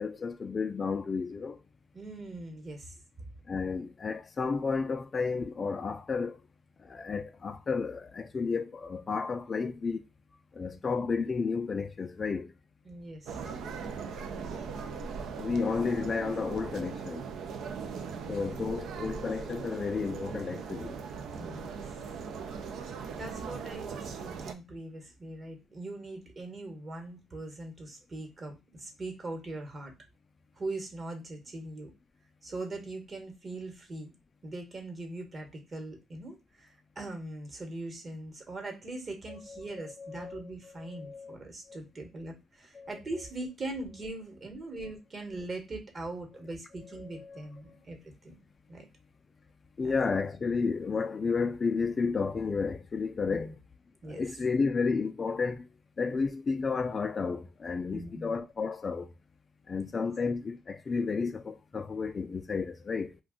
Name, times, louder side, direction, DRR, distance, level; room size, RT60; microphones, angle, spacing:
voice 1, 0.0-1.6 3.5-6.4 6.8-10.0 10.5-12.5 15.3-17.3 18.3-21.0 39.5-40.4 40.8-41.4 41.7-41.8 42.7-42.9 47.0-47.4 49.8-53.5 54.0-55.7 56.0-59.1 59.7-63.2, left 4 dB, 35° left, 0.3 m, -32 dB
voice 2, 1.9-3.0 12.8-13.7 17.7-18.7 21.3-21.8 23.1-29.9 30.6-31.9 32.4-34.1 34.4-48.3 48.7-48.9 49.8-49.9 53.3-53.5 54.0-54.2 57.9-58.4, right 2 dB, 40° right, 1.1 m, -41 dB
sound 1, 13.2-24.5, right 5 dB, 75° right, 0.4 m, -39 dB
2.4 x 2.3 x 3.6 m
cardioid pair, 90°, 0 cm